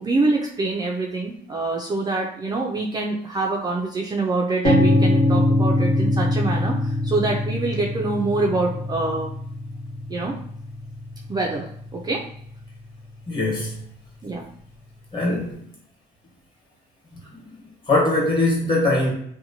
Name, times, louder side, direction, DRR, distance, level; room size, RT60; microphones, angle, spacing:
voice 1, 0.0-9.3 10.1-10.3 11.3-12.2 14.2-14.5, right 3 dB, 25° right, -1 dB, 0.3 m, -25 dB
sound 1, 4.6-12.5, left 1 dB, 75° left, 1.2 m, -23 dB
voice 2, 13.3-13.7 15.1-15.6 17.2-17.4 17.9-19.1, left 2 dB, 30° left, -3 dB, 1.2 m, -21 dB
2.8 x 2.1 x 2.7 m, 0.66 s
cardioid pair, 110°, 17 cm